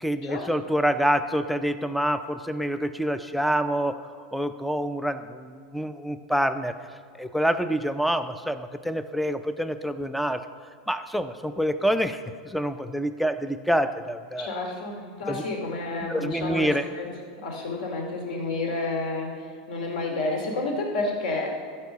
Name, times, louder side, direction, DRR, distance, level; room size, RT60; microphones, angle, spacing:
voice 1, 0.0-4.0 4.3-6.7 7.1-10.4 10.9-14.5 15.3-15.4 16.1-16.9, equal, ahead, 11 dB, 0.4 m, -26 dB
voice 2, 14.4-17.1 17.4-21.8, left 2 dB, 70° left, 1 dB, 2.7 m, -30 dB
14.0 x 4.9 x 7.0 m, 2.2 s
supercardioid pair, 160°, 4 cm